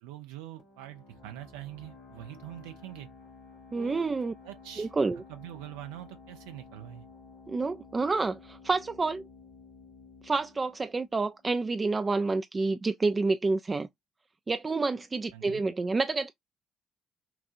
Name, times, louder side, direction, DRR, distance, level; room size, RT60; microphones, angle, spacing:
voice 1, 0.0-3.1 3.7-4.1 4.4-7.1 15.3-15.6, right 13 dB, 75° right, 0.8 m, -44 dB
sound 1, 0.6-12.0, left 4 dB, 75° left, 2.1 m, -53 dB
voice 2, 3.7-4.3 4.8-5.2 7.5-9.2 10.2-13.9 14.5-16.3, right 3 dB, 30° right, 0.4 m, -28 dB
5.9 x 2.4 x 2.6 m
hypercardioid pair, 50°, 0 cm